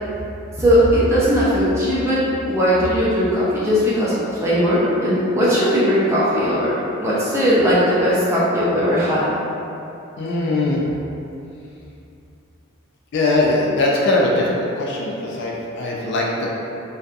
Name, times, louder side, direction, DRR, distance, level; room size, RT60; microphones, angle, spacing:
voice 1, 0.6-2.2 2.5-6.7 7.0-9.2, equal, 10° right, -9 dB, 0.5 m, -18 dB
voice 2, 10.2-10.8 13.1-16.5, left 2 dB, 50° left, -3 dB, 0.3 m, -20 dB
2.6 x 2.3 x 2.3 m, 2.7 s
head